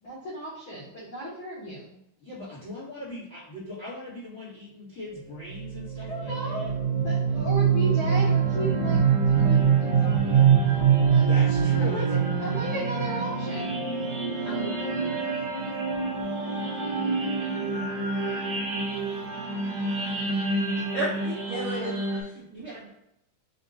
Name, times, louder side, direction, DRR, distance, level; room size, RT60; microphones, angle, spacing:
voice 1, 0.0-2.0 6.0-11.3 11.5-12.1 12.4-13.9 20.7-20.9, equal, 80° left, -8 dB, 1.1 m, -36 dB
voice 2, 2.2-6.7 11.2-12.2, left 2 dB, 40° left, -9 dB, 1.0 m, -39 dB
sound 1, 5.5-22.2, right 6 dB, 60° right, 1.7 m, -25 dB
voice 3, 14.4-15.1 20.9-21.9 22.2-22.9, right 2 dB, 80° right, -8 dB, 1.2 m, -34 dB
5.7 x 2.3 x 3.9 m, 0.82 s
omnidirectional pair, 4.4 m